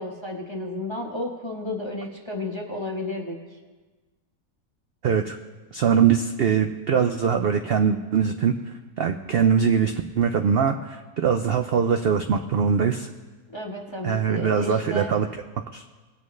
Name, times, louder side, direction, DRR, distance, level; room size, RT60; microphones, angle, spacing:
voice 1, 0.0-3.4 13.5-15.1, left 2 dB, 20° left, 0 dB, 1.0 m, -32 dB
voice 2, 5.0-5.4 5.7-8.5 9.0-13.1 14.0-15.3 15.7-15.8, right 7 dB, 85° right, 6 dB, 0.5 m, -22 dB
21.0 x 8.5 x 3.1 m, 1.3 s
omnidirectional pair, 1.6 m